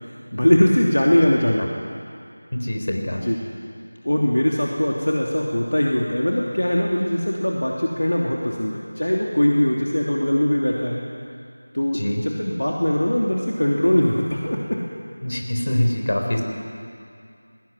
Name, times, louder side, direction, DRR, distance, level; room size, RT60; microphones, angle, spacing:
voice 1, 0.3-1.7 3.1-3.4 4.0-11.0 11.7-14.8, left 1 dB, 65° left, -2 dB, 2.8 m, -21 dB
voice 2, 2.5-3.2 11.9-12.2 15.2-16.4, left 1 dB, 50° left, 2 dB, 4.0 m, -24 dB
20.0 x 19.5 x 9.6 m, 2.4 s
figure-of-eight pair, 170°, 0 cm